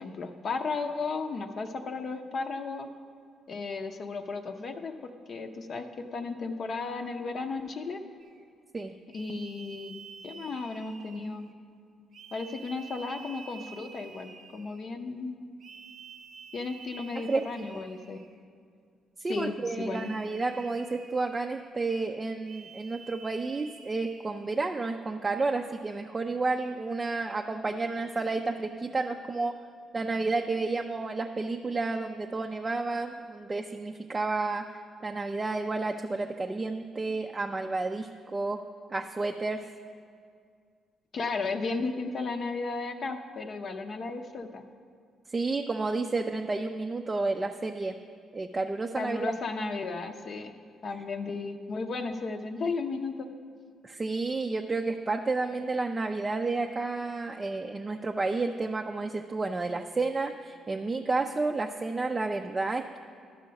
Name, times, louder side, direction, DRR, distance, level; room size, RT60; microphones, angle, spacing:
voice 1, 0.0-2.9 3.5-4.9 5.3-8.0 9.1-9.9 10.2-11.4 12.3-15.5 16.5-18.2 19.3-20.1 41.1-44.6 48.9-50.5 50.8-53.3, left 4 dB, 50° left, 5 dB, 0.6 m, -34 dB
sound 1, 8.2-8.4 9.1-11.5 12.1-14.9 15.6-18.4 19.8-21.7 22.4-24.5, right 5 dB, 60° right, 0.7 m, -50 dB
voice 2, 17.3-17.7 19.2-29.5 29.9-34.6 35.0-38.6 38.9-39.6 45.3-48.0 48.3-49.3 53.8-63.0, right 3 dB, 25° right, 4 dB, 0.4 m, -31 dB
12.0 x 5.6 x 5.2 m, 2.1 s
cardioid pair, 90°, 0 cm